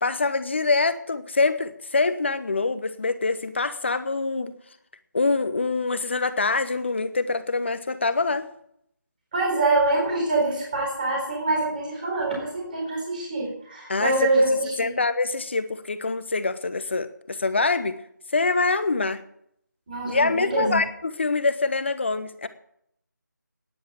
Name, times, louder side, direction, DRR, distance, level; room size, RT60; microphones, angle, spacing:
voice 1, 0.0-4.5 5.1-8.5 13.9-14.1 14.8-18.0 18.3-19.2 20.1-22.5, left 3 dB, 35° left, 12 dB, 0.9 m, -25 dB
voice 2, 9.3-14.9 19.9-20.8, right 2 dB, 25° right, -1 dB, 4.2 m, -25 dB
11.0 x 10.0 x 8.9 m, 0.73 s
figure-of-eight pair, 165°, 10 cm